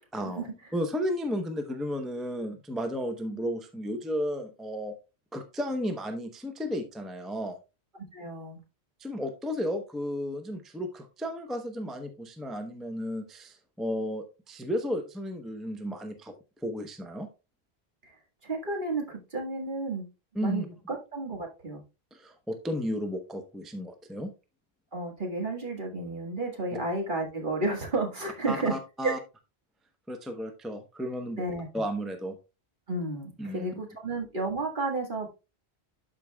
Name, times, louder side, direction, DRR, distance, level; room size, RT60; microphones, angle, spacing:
voice 1, 0.1-4.9 5.3-7.6 9.0-16.4 16.6-17.3 20.3-20.7 22.1-24.3 28.5-29.2 30.1-31.4 31.7-32.4 33.4-33.7, equal, ahead, 6 dB, 0.7 m, -33 dB
voice 2, 8.1-8.6 18.0-18.1 18.4-20.1 20.4-21.8 24.9-28.7 29.0-29.2 31.4-31.7 32.9-35.3, right 3 dB, 50° right, 1 dB, 1.9 m, -32 dB
12.0 x 4.8 x 2.2 m, 0.29 s
omnidirectional pair, 1.1 m